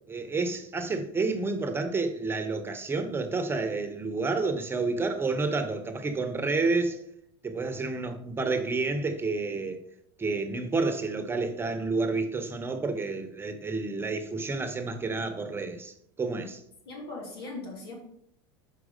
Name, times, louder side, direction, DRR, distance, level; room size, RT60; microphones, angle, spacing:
voice 1, 0.1-7.0 7.4-9.8 10.2-16.6, right 3 dB, 20° right, 0.9 m, -30 dB
voice 2, 16.8-17.9, left 2 dB, 90° left, 2.8 m, -39 dB
6.1 x 4.6 x 5.1 m
supercardioid pair, 100°, 13 cm